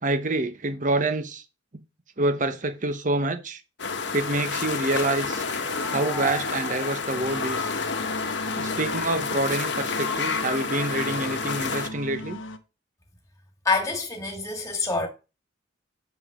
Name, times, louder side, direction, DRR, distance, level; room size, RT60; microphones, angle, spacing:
voice 1, 0.0-1.4 2.2-3.6 4.1-5.4 5.9-7.7 8.5-12.4, right 2 dB, 40° right, 0.9 m, -27 dB
sound 1, 3.8-11.9, left 4 dB, 60° left, 1.1 m, -29 dB
sound 2, 5.2-8.6, right 2 dB, 10° right, 0.5 m, -40 dB
sound 3, 7.1-12.6, left 2 dB, 80° left, 1.0 m, -37 dB
voice 2, 13.6-15.1, left 4 dB, 15° left, 2.0 m, -26 dB
7.0 x 5.7 x 4.9 m
head